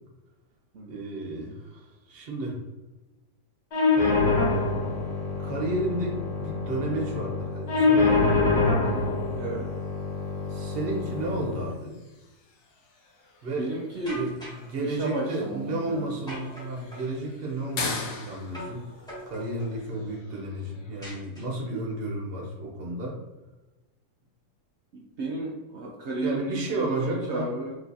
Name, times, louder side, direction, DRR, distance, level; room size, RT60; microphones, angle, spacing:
voice 1, 0.9-2.6 5.4-8.3 10.5-12.0 13.4-13.7 14.2-18.8 19.3-23.2 26.2-27.5, right 2 dB, 40° right, -1 dB, 1.0 m, -32 dB
sound 1, 3.7-11.7, left 3 dB, 80° left, 2.0 m, -25 dB
sound 2, 9.3-21.3, left 3 dB, 60° left, 0.8 m, -42 dB
voice 2, 9.3-9.7 13.6-14.2 14.8-16.1 24.9-27.8, right 2 dB, 70° right, -1 dB, 0.6 m, -33 dB
sound 3, 14.0-14.7 16.3-17.2 18.5-18.8 19.1-19.8 21.0-21.8, right 1 dB, 5° left, 1.2 m, -42 dB
4.9 x 2.9 x 2.6 m, 1.1 s
omnidirectional pair, 1.8 m